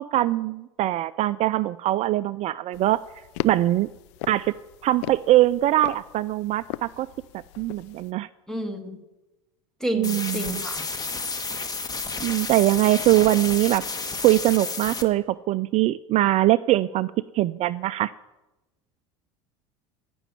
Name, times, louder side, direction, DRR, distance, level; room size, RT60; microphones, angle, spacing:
voice 1, 0.0-3.0 3.4-3.9 4.3-4.5 4.8-7.1 7.6-8.3 9.9-10.6 12.2-13.8 14.2-18.1, right 15 dB, 45° right, 15 dB, 0.4 m, -22 dB
sound 1, 2.7-8.1, left 16 dB, 70° left, 0.5 m, -38 dB
voice 2, 8.5-9.0 9.8-10.8, equal, 5° left, 7 dB, 2.2 m, -30 dB
sound 2, 10.0-15.0, left 4 dB, 25° left, 1.6 m, -31 dB
15.0 x 6.2 x 9.9 m, 1.0 s
hypercardioid pair, 80°, 16 cm